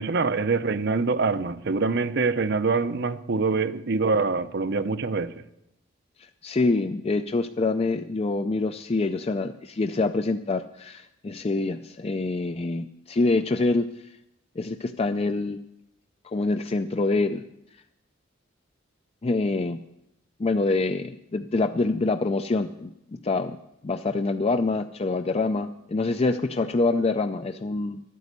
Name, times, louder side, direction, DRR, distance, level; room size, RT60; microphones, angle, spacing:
voice 1, 0.0-5.3, right 4 dB, 60° right, 0.7 m, -25 dB
voice 2, 6.2-14.1 14.6-15.6 16.2-17.4 19.2-19.8 20.4-23.6 23.8-28.0, left 3 dB, 30° left, 0.4 m, -26 dB
12.5 x 9.3 x 8.2 m
head